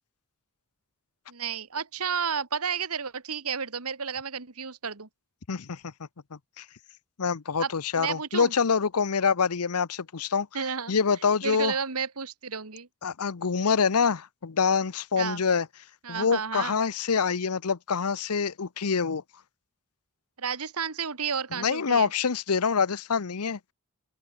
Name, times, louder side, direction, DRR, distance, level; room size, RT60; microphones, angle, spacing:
voice 1, 1.3-5.1 7.6-8.5 10.5-10.9 11.4-12.9 15.2-15.4 16.0-16.8 20.4-22.1, right 6 dB, 75° right, 1.8 m, -32 dB
voice 2, 5.5-5.9 6.3-6.6 7.2-10.5 10.9-11.7 13.0-15.7 16.1-19.2 21.5-23.6, left 5 dB, 80° left, 0.8 m, -26 dB
open air
head